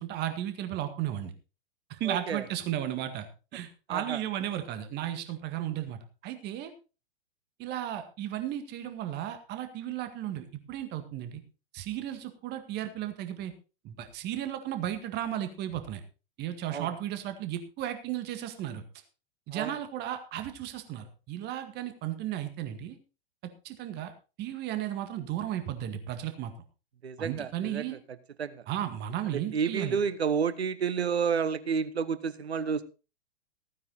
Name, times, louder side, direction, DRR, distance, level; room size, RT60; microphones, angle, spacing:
voice 1, 0.0-1.3 1.9-3.3 3.5-6.7 7.6-11.4 11.7-13.5 13.8-16.0 16.4-18.8 19.5-23.0 23.6-24.1 24.4-26.5 27.2-28.0 28.7-30.0, right 11 dB, 30° right, 8 dB, 1.9 m, -34 dB
voice 2, 2.1-2.4 3.9-4.2 16.7-16.9 19.5-19.7 27.0-27.9 28.4-28.6 29.3-32.8, right 6 dB, 80° right, 14 dB, 1.1 m, -30 dB
15.5 x 9.5 x 4.0 m, 0.33 s
figure-of-eight pair, 110°, 31 cm